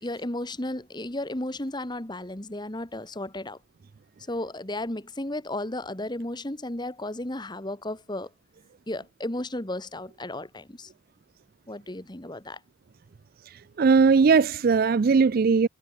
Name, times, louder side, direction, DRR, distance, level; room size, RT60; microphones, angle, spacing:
voice 1, 0.0-3.6 4.3-8.3 8.9-10.9 11.7-12.6, left 1 dB, 20° left, 1.7 m, -34 dB
voice 2, 13.8-15.7, right 5 dB, 50° right, 0.4 m, -19 dB
head